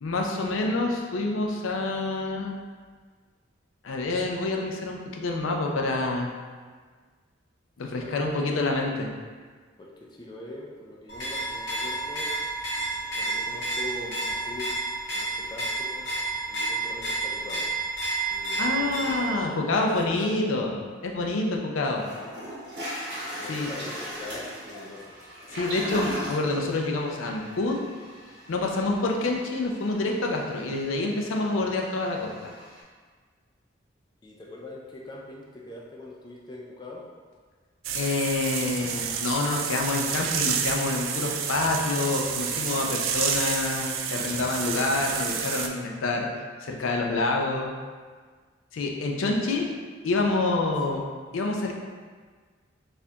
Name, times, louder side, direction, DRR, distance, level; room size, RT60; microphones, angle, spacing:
voice 1, 0.0-2.6 3.8-6.3 7.8-9.1 18.6-22.0 23.5-23.7 25.5-27.8 28.5-32.5 37.9-46.3 46.6-47.7 48.7-49.6 50.0-51.7, left 2 dB, 90° left, 1 dB, 0.5 m, -27 dB
voice 2, 9.8-12.3 13.1-14.7 15.1-16.1 16.5-17.7 18.3-20.4 23.4-25.1 34.2-37.0 49.2-49.7 50.9-51.0, left 1 dB, 20° left, -3 dB, 0.3 m, -42 dB
sound 1, 11.1-19.4, right 2 dB, 65° left, 0.9 m, -30 dB
Toilet flush, 21.5-21.6 22.0-32.8, equal, 55° right, 1.4 m, -39 dB
sound 2, 37.8-45.7, right 7 dB, 85° right, 0.3 m, -30 dB
4.1 x 2.5 x 2.8 m, 1.5 s
head